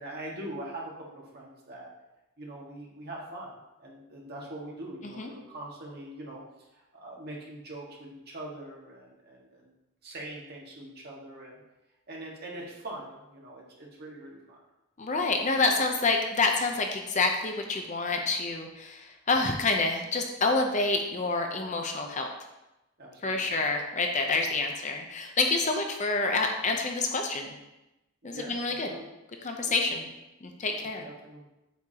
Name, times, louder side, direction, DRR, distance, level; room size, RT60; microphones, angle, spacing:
voice 1, 0.0-1.9 2.4-6.4 6.7-9.7 10.0-11.6 12.1-14.6 23.0-23.6 24.5-24.6 28.2-29.1 29.7-30.0 30.7-31.4, right 1 dB, 45° right, -3 dB, 1.7 m, -43 dB
voice 2, 15.0-22.3 23.2-27.5 28.2-28.9 29.4-30.1 30.4-31.0, left 3 dB, 35° left, 3 dB, 0.6 m, -28 dB
8.2 x 6.5 x 2.9 m, 0.94 s
head